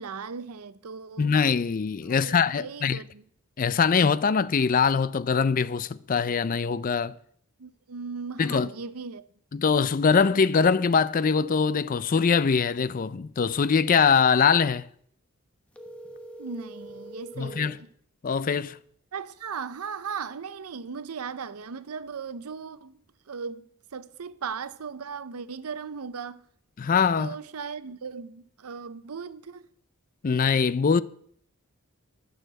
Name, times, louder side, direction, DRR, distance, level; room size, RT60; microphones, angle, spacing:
voice 1, 0.0-1.3 2.0-3.2 7.6-9.3 16.4-17.9 19.1-23.0 23.3-26.4 27.2-29.7, right 5 dB, 90° right, 0.7 m, -37 dB
voice 2, 1.2-3.0 3.6-7.1 8.4-8.7 9.5-14.9 17.4-17.8 18.2-18.8 26.8-27.3 30.2-31.0, left 6 dB, 40° left, 0.4 m, -23 dB
sound 1, 15.7-17.8, right 1 dB, 5° left, 0.9 m, -43 dB
12.0 x 6.5 x 7.6 m
head